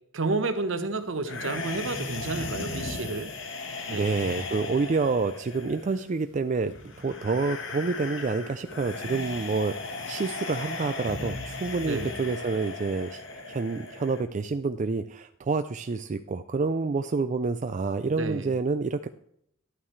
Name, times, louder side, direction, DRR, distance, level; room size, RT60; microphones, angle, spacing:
voice 1, 0.1-3.3 3.9-4.2 11.9-12.2 18.2-18.5, right 3 dB, 70° right, 10 dB, 1.0 m, -30 dB
sound 1, 1.2-14.2, left 3 dB, 65° left, 1.4 m, -37 dB
voice 2, 3.9-6.7 7.0-13.2 13.5-19.1, right 4 dB, 40° right, 9 dB, 0.4 m, -28 dB
11.5 x 8.8 x 3.2 m, 0.70 s
head